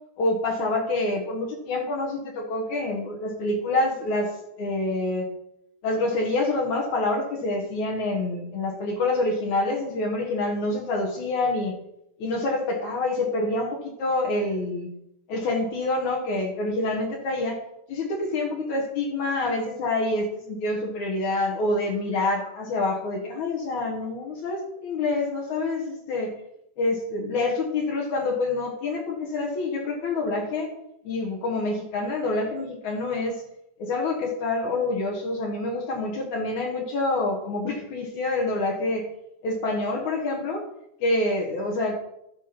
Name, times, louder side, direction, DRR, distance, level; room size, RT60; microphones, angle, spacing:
voice 1, 0.2-4.3 4.6-5.3 5.8-11.7 12.2-14.9 15.3-17.6 17.9-26.3 26.8-30.7 31.0-33.4 33.8-39.1 39.4-40.6 41.0-42.0, left 2 dB, 60° left, -1 dB, 2.6 m, -27 dB
12.0 x 4.9 x 5.9 m, 0.79 s
omnidirectional pair, 4.3 m